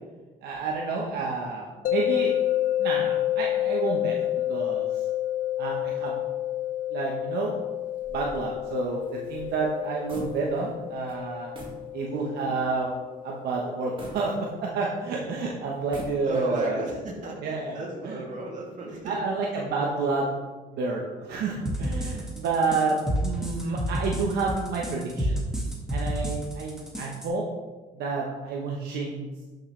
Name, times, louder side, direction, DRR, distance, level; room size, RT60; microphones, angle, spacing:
voice 1, 0.4-2.3 2.8-4.2 4.5-5.0 5.6-6.1 6.9-7.5 8.1-11.5 11.9-12.9 13.2-14.3 14.6-16.8 17.4-18.2 19.0-20.3 20.7-21.0 21.3-25.4 25.9-27.4 27.9-29.3, right 4 dB, 70° right, -1 dB, 1.3 m, -29 dB
sound 1, 1.8-14.9, left 13 dB, 55° left, 0.5 m, -30 dB
sound 2, 8.0-10.8 11.1-11.2 11.5-11.9 12.3-12.4 14.0-15.0 15.7-16.6, right 1 dB, 30° right, 2.0 m, -43 dB
voice 2, 16.2-19.2, right 2 dB, 50° right, -2 dB, 2.6 m, -33 dB
sound 3, 21.7-27.3, equal, 5° right, 1.9 m, -29 dB
12.0 x 6.5 x 3.4 m, 1.3 s
cardioid pair, 110°, 17 cm